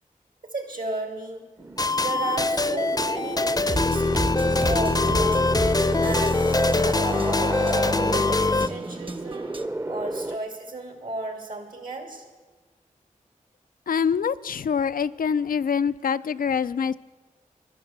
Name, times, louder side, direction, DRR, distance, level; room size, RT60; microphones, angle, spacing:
voice 1, 0.4-1.5 1.9-9.5 9.9-12.2, right 2 dB, 75° right, 2.6 m, -34 dB
sound 1, 1.6-10.4, right 2 dB, 20° right, 0.6 m, -32 dB
sound 2, 1.8-8.7, left 3 dB, 30° left, 0.6 m, -23 dB
sound 3, 3.6-9.7, right 2 dB, 40° right, 1.0 m, -34 dB
voice 2, 13.9-17.0, left 6 dB, 85° left, 0.4 m, -25 dB
12.0 x 11.5 x 8.0 m
wide cardioid pair, 60°, 14 cm